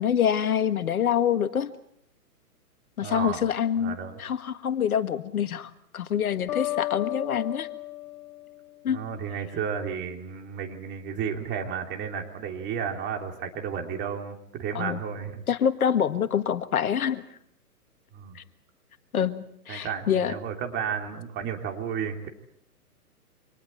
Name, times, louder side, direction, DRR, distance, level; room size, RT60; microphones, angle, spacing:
voice 1, 0.0-1.7 3.0-7.7 8.8-9.0 14.8-15.0 15.5-17.2 18.4-18.5 19.1-20.3, left 8 dB, 65° left, 10 dB, 1.7 m, -26 dB
voice 2, 3.0-3.4 3.8-4.2 8.9-15.4 18.1-18.4 19.7-22.3, right 7 dB, 25° right, 3 dB, 3.1 m, -32 dB
sound 1, 6.5-9.3, left 16 dB, 40° left, 3.5 m, -34 dB
29.5 x 26.0 x 4.4 m, 0.69 s
hypercardioid pair, 130°, 46 cm